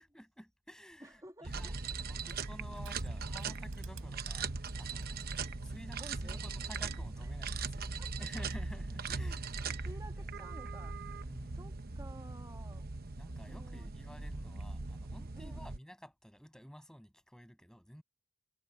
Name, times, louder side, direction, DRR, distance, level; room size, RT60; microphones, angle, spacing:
voice 1, 0.0-1.7 2.1-4.5 4.8-9.9 10.2-10.3 11.2-11.7 13.2-18.0, equal, 5° left, 6.7 m, -53 dB
Crushing, 0.9-5.8, right 11 dB, 80° right, 3.5 m, -61 dB
voice 2, 1.0-2.0 6.0-6.4 7.9-8.3 9.8-11.0 11.5-12.9 13.5-14.3 15.4-15.8, right 1 dB, 15° right, 1.9 m, -53 dB
sound 1, 1.4-15.8, right 4 dB, 45° right, 0.9 m, -40 dB
head